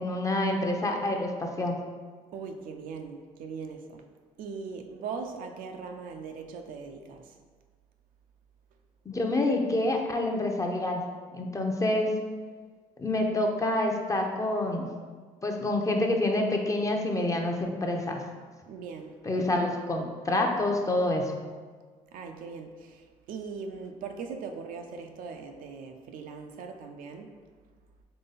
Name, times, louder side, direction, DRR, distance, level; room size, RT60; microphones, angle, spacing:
voice 1, 0.0-1.8 9.1-11.0 11.3-12.1 13.0-14.9 15.4-18.2 19.2-21.4, left 1 dB, 20° left, 2 dB, 0.7 m, -27 dB
voice 2, 2.3-4.0 4.4-7.4 18.7-19.2 22.1-27.3, right 5 dB, 65° right, 5 dB, 0.5 m, -40 dB
3.9 x 3.2 x 4.0 m, 1.5 s
supercardioid pair, 70°, 15 cm